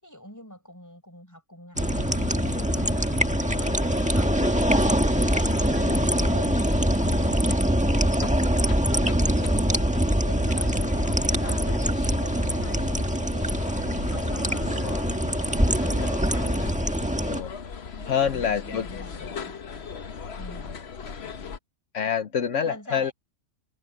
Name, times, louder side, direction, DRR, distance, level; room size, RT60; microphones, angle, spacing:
voice 1, 0.0-4.9 5.2-6.7 7.1-13.6 14.1-14.8 15.2-15.7 16.3-16.8 18.0-19.5 20.4-20.7 22.6-23.1, equal, 15° left, 6.2 m, -45 dB
sound 1, 1.7-21.6, left 5 dB, 55° left, 1.3 m, -37 dB
sound 2, 1.8-17.4, right 1 dB, 5° right, 1.5 m, -24 dB
voice 2, 5.7-6.0 14.8-15.1 15.9-16.3 17.2-17.5 18.1-18.9 21.9-23.1, left 8 dB, 70° left, 1.3 m, -27 dB
omnidirectional pair, 1.3 m